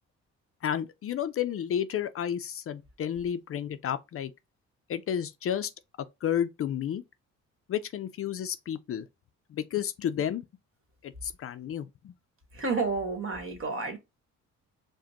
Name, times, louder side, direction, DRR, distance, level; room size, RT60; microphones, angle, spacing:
voice 1, 0.6-4.3 4.9-5.7 6.2-7.0 7.7-9.0 9.5-10.4 11.0-12.1, left 9 dB, 50° left, 0.4 m, -31 dB
voice 2, 12.5-14.0, right 4 dB, 45° right, 1.5 m, -30 dB
4.9 x 2.2 x 2.8 m
cardioid pair, 90°, 30 cm